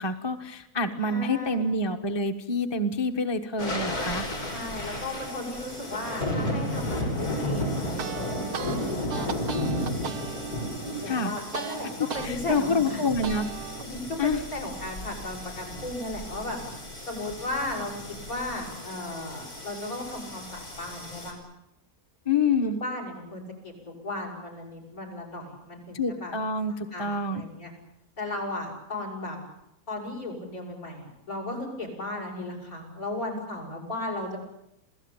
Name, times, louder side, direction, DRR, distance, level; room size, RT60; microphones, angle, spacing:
voice 1, 0.0-4.3 11.1-11.3 12.2-13.5 14.2-14.4 22.2-22.8 25.9-27.4, left 3 dB, 20° left, 6 dB, 1.2 m, -27 dB
voice 2, 1.0-1.7 4.5-9.6 11.0-13.0 13.8-16.6 17.1-17.9 18.3-21.4 22.6-26.3 26.7-27.7 28.2-29.4 29.9-34.4, left 2 dB, 70° left, 3 dB, 7.7 m, -35 dB
sound 1, 3.6-21.3, left 1 dB, 90° left, 5.5 m, -34 dB
sound 2, 7.8-12.3 12.7-13.8, right 7 dB, 90° right, 1.7 m, -36 dB
28.0 x 17.0 x 9.1 m, 0.84 s
omnidirectional pair, 1.6 m